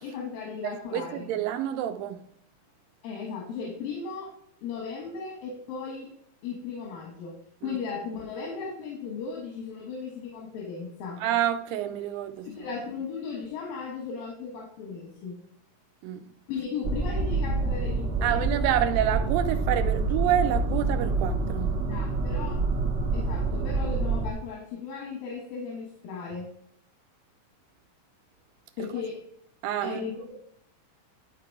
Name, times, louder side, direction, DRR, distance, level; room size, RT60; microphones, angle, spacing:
voice 1, 0.0-1.3 3.0-4.3 4.6-6.1 6.4-7.3 7.6-11.2 12.4-15.4 16.5-18.5 21.9-22.6 23.1-26.5 28.8-29.2 29.8-30.3, left 5 dB, 85° left, 3.3 m, -36 dB
voice 2, 0.6-2.2 7.6-7.8 11.2-12.7 16.0-16.2 18.2-21.7 29.6-30.0, right 11 dB, 85° right, 2.5 m, -28 dB
sound 1, 16.8-24.3, right 3 dB, 40° right, 1.8 m, -27 dB
12.0 x 3.9 x 4.7 m
omnidirectional pair, 4.0 m